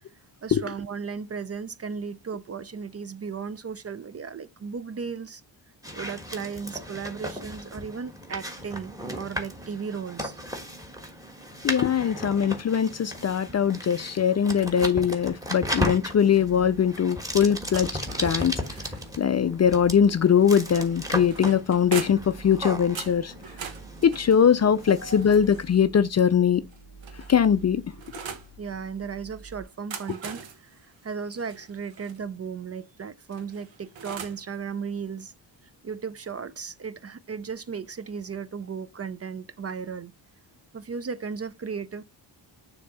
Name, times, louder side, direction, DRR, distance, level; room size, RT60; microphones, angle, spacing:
voice 1, 0.4-5.4 5.9-10.4 25.0-25.2 28.6-35.3 35.8-40.1 40.7-42.0, right 6 dB, 35° right, 0.4 m, -35 dB
sound 1, 5.8-25.6, equal, 10° right, 1.4 m, -36 dB
voice 2, 11.6-17.9 18.2-18.5 19.2-23.3 24.0-26.6 27.3-27.8, left 8 dB, 40° left, 0.4 m, -21 dB
sound 2, 16.0-29.6, right 3 dB, 50° right, 1.4 m, -49 dB
sound 3, 17.7-19.3 20.6-22.4 23.0-25.9 26.7-28.5 29.7-32.2 33.3-34.5, right 6 dB, 80° right, 1.1 m, -41 dB
6.9 x 2.9 x 5.3 m
wide cardioid pair, 110°, 45 cm